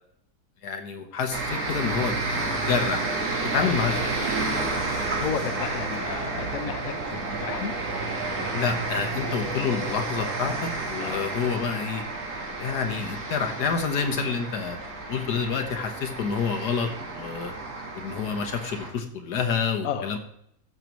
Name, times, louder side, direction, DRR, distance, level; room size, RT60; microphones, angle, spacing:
voice 1, 0.6-3.2 3.5-4.1 8.5-12.0 12.6-14.8 15.1-17.5 17.9-20.2, left 6 dB, 90° left, 5 dB, 1.7 m, -28 dB
sound 1, 1.3-18.9, right 3 dB, 55° right, 1.9 m, -31 dB
voice 2, 5.1-7.7 11.0-11.3 19.8-20.1, left 8 dB, 65° left, 8 dB, 1.1 m, -33 dB
12.5 x 6.9 x 3.0 m, 0.73 s
omnidirectional pair, 1.7 m